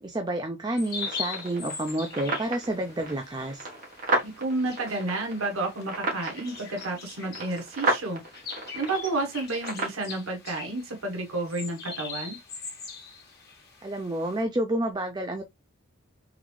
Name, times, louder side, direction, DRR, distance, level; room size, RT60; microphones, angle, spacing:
voice 1, 0.0-3.7 13.8-15.4, right 1 dB, 20° right, 0.4 m, -29 dB
sound 1, 0.8-14.4, left 5 dB, 50° left, 1.5 m, -42 dB
sound 2, 1.0-10.0, right 2 dB, 40° right, 1.3 m, -34 dB
voice 2, 4.2-8.2 8.7-12.4, right 2 dB, 85° right, 1.2 m, -31 dB
3.8 x 3.5 x 3.1 m
head